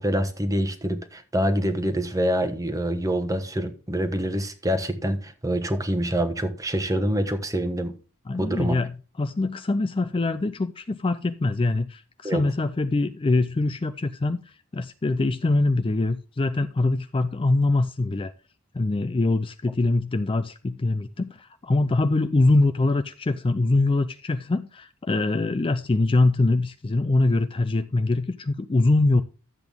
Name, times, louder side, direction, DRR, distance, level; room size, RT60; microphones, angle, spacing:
voice 1, 0.0-7.9 8.4-8.8 12.2-12.4, equal, 15° right, 1.1 m, -26 dB
voice 2, 8.3-8.9 9.2-18.3 18.7-29.2, left 2 dB, 25° left, 0.4 m, -23 dB
12.0 x 7.9 x 3.6 m
head